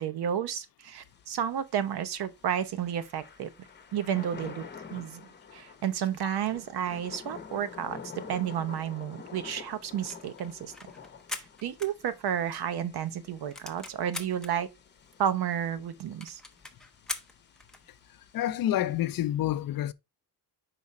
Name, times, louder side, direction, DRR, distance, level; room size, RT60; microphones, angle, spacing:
voice 1, 0.0-3.5 3.9-4.7 4.9-10.7 11.3-14.7 15.2-16.4, right 9 dB, 75° right, 0.9 m, -32 dB
Thunder / Rain, 1.0-19.2, left 6 dB, 25° left, 1.0 m, -49 dB
sound 1, 10.0-12.6 12.9-13.0 13.3-14.5 15.1-15.2 15.4-15.5 15.8-15.9 16.2-17.9, left 2 dB, ahead, 0.6 m, -41 dB
voice 2, 18.3-19.9, left 12 dB, 60° left, 0.5 m, -28 dB
5.0 x 4.8 x 4.0 m
wide cardioid pair, 160°, 39 cm